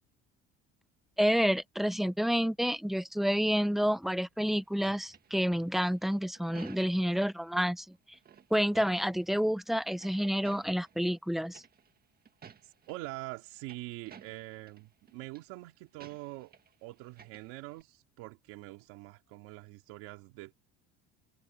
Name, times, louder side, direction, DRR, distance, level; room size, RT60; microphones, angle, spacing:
voice 1, 1.2-7.9 8.5-11.6, equal, ahead, 0.7 m, -29 dB
sound 1, 4.5-7.2 8.1-9.4 9.7-11.0 11.5-12.0 12.2-13.0 13.4-14.8 15.1-15.4 16.0-16.7 17.0-17.8, right 7 dB, 30° right, 1.7 m, -54 dB
voice 2, 12.6-16.5 16.8-20.5, right 20 dB, 90° right, 2.8 m, -44 dB
cardioid pair, 130°, 30 cm